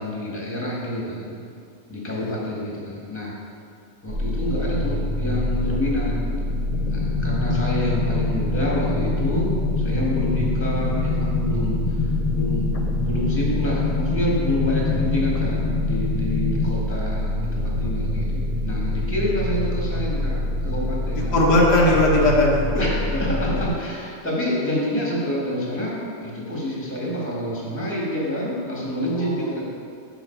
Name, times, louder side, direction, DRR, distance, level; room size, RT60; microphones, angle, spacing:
voice 1, 0.0-1.4 1.9-3.3 4.0-6.2 6.9-12.6 13.0-21.3 22.8-29.6, left 1 dB, 10° left, -5 dB, 1.7 m, -28 dB
sound 1, 4.1-23.7, left 1 dB, 30° right, 0.8 m, -26 dB
sound 2, 6.7-16.7, left 5 dB, 65° left, 0.3 m, -27 dB
voice 2, 21.3-22.9 29.1-29.6, left 1 dB, 80° left, -3 dB, 1.8 m, -19 dB
7.2 x 6.2 x 4.5 m, 2.5 s
omnidirectional pair, 1.8 m